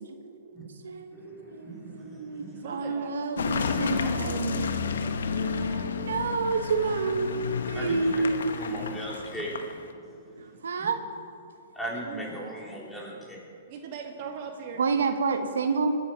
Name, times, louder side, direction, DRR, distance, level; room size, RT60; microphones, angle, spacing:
voice 1, 0.0-4.7 5.3-8.5 10.4-11.0 14.8-16.0, right 4 dB, 85° right, 7 dB, 1.2 m, -29 dB
voice 2, 1.1-2.9 7.7-8.1 8.6-10.9 11.7-13.4, right 1 dB, 5° left, -5 dB, 3.9 m, -39 dB
voice 3, 2.6-3.1 3.8-4.5 12.0-12.5 13.7-14.8, right 6 dB, 45° right, 3 dB, 1.8 m, -40 dB
Car passing by / Engine, 3.4-9.9, left 5 dB, 80° left, 1.0 m, -31 dB
20.0 x 8.4 x 6.2 m, 2.4 s
hypercardioid pair, 135°, 0 cm